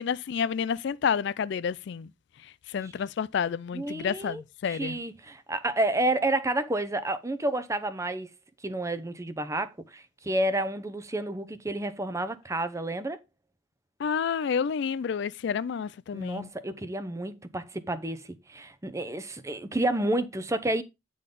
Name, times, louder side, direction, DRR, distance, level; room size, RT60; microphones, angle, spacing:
voice 1, 0.0-2.1 2.7-5.0 14.0-16.5, left 7 dB, 60° left, 0.3 m, -29 dB
voice 2, 3.7-4.4 4.7-8.3 8.6-13.2 16.1-20.8, right 1 dB, 15° right, 0.6 m, -30 dB
9.1 x 3.9 x 5.2 m
head